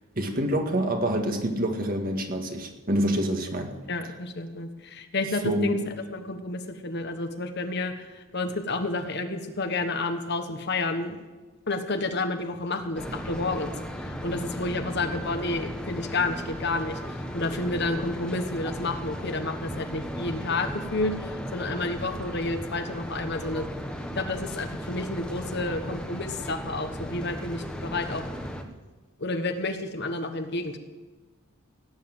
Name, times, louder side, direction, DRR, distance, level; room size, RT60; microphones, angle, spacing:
voice 1, 0.2-3.7 5.4-5.7, right 1 dB, 40° right, 4 dB, 1.9 m, -26 dB
voice 2, 3.9-5.8 6.1-11.2 11.7-13.7 14.0-23.7 24.1-28.2 29.2-30.8, left 2 dB, 50° left, 7 dB, 1.3 m, -30 dB
sound 1, 12.9-28.6, equal, 5° left, 1.2 m, -36 dB
17.0 x 9.7 x 7.9 m, 1.2 s
head